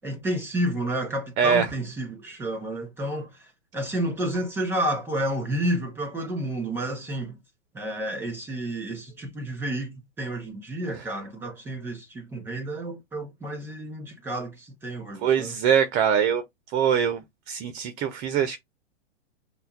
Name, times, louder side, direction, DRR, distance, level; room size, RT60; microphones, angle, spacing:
voice 1, 0.0-3.5 3.7-7.4 7.7-15.6, right 1 dB, 5° right, 1.6 m, -30 dB
voice 2, 1.4-1.7 15.2-16.4 16.7-18.6, right 8 dB, 25° right, 0.4 m, -23 dB
5.6 x 2.2 x 3.8 m
hypercardioid pair, 120°, 35 cm